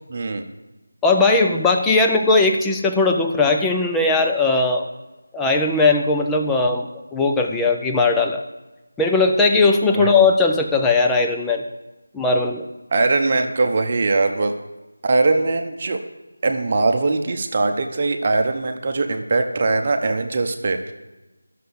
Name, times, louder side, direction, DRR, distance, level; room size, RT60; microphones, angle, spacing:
voice 1, 0.1-0.5 9.9-10.1 12.9-14.5 15.0-16.0 16.4-20.9, right 3 dB, 35° right, 5 dB, 0.9 m, -21 dB
voice 2, 1.0-4.9 5.3-8.4 9.0-11.6 12.1-12.7, left 3 dB, 5° left, 1 dB, 0.5 m, -18 dB
11.0 x 6.7 x 7.0 m, 1.1 s
figure-of-eight pair, 165°, 0 cm